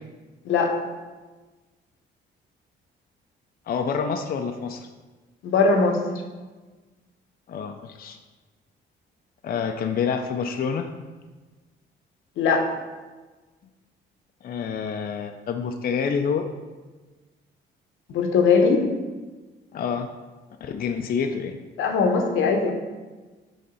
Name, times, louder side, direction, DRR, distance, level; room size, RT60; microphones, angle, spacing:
voice 1, 3.7-4.9 7.5-8.2 9.4-10.9 14.4-16.5 19.7-20.1 20.6-21.6, left 6 dB, 50° left, 5 dB, 0.5 m, -27 dB
voice 2, 5.4-6.0 12.4-12.6 18.1-18.8 21.8-22.7, left 4 dB, 85° left, 3 dB, 0.9 m, -20 dB
6.7 x 3.3 x 5.5 m, 1.3 s
cardioid pair, 90°, 20 cm